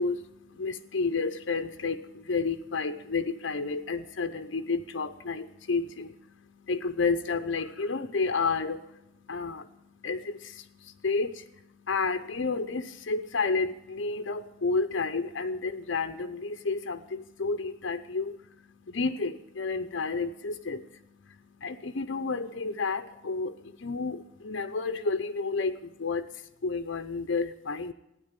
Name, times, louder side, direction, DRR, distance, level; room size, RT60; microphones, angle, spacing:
voice 1, 0.0-27.9, left 4 dB, 75° left, 7 dB, 0.8 m, -31 dB
15.0 x 9.8 x 8.9 m, 0.86 s
head